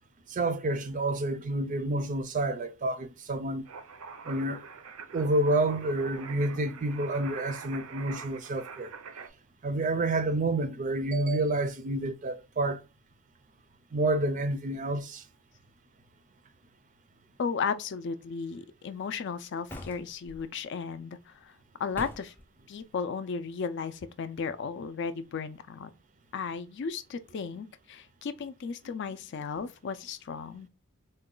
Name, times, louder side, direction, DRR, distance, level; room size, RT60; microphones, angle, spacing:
voice 1, 0.3-3.6 4.3-4.6 5.1-8.9 9.6-12.8 13.9-15.2, right 2 dB, 35° right, 0.4 m, -29 dB
sound 1, 3.7-9.3, right 5 dB, 80° right, 0.6 m, -44 dB
voice 2, 17.4-21.5 21.8-22.3 22.7-25.9 26.3-30.7, left 5 dB, 55° left, 0.4 m, -35 dB
Door slam, 19.7-20.4 21.9-22.4, left 1 dB, 10° left, 0.6 m, -43 dB
3.8 x 2.2 x 3.7 m
head